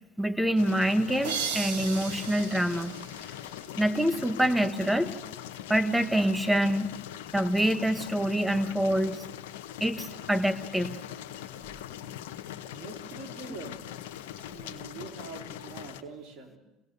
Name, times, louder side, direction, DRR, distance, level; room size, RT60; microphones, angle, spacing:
voice 1, 0.2-3.0 3.8-5.1 5.7-6.9 7.3-9.2 9.8-11.0, right 1 dB, 5° right, 11 dB, 1.7 m, -26 dB
sound 1, 0.6-16.0, left 11 dB, 90° left, 1.0 m, -41 dB
sound 2, 1.2-4.0, right 6 dB, 85° right, 2.2 m, -36 dB
voice 2, 12.7-13.8 14.4-16.6, right 4 dB, 55° right, 4 dB, 4.0 m, -44 dB
27.0 x 17.0 x 6.9 m, 0.98 s
supercardioid pair, 80°, 0 cm